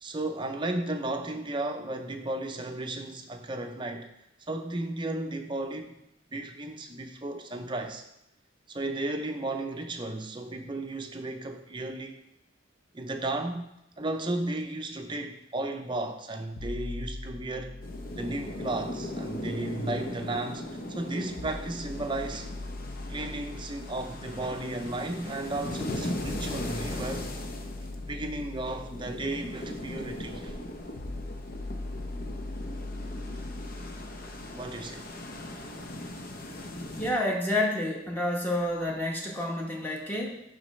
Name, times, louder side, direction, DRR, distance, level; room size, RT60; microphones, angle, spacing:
voice 1, 0.0-4.1 4.5-6.0 6.3-8.0 8.7-12.2 12.9-13.7 14.0-17.8 18.1-22.5 23.1-27.3 28.1-30.6 34.5-35.1, right 2 dB, 25° right, 5 dB, 0.6 m, -34 dB
sound 1, 16.6-20.6 21.4-35.4, left 2 dB, 90° left, 0.8 m, -42 dB
sound 2, 17.8-37.1, left 1 dB, 50° left, 0.7 m, -39 dB
voice 2, 37.0-40.4, left 1 dB, 10° left, -2 dB, 1.0 m, -29 dB
11.5 x 4.1 x 3.2 m, 0.84 s
head